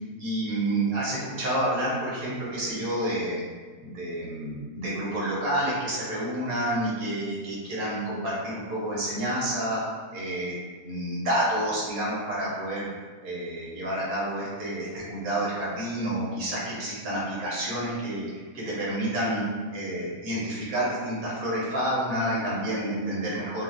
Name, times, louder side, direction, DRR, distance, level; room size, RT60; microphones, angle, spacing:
voice 1, 0.2-3.4 3.8-9.8 10.1-10.5 10.8-12.9 13.2-19.4 19.7-23.6, right 1 dB, 60° right, -7 dB, 1.3 m, -29 dB
3.3 x 2.4 x 2.5 m, 1.5 s
omnidirectional pair, 1.8 m